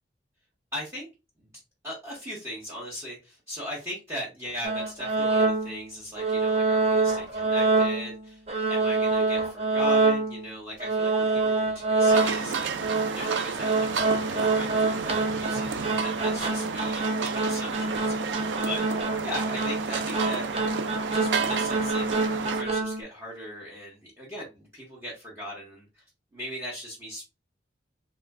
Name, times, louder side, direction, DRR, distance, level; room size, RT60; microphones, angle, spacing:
voice 1, 0.7-1.1 1.8-8.4 8.7-12.7 13.1-18.4 18.6-18.8 19.2-20.5 21.1-22.1 22.5-26.0 26.3-27.2, left 1 dB, 15° right, -5 dB, 1.0 m, -38 dB
sound 1, 4.6-5.8 6.2-8.2 8.5-10.5 10.8-23.0, right 3 dB, 35° right, 0.6 m, -26 dB
sound 2, 12.1-22.6, right 5 dB, 85° right, 0.4 m, -31 dB
3.0 x 2.4 x 3.4 m, 0.26 s
head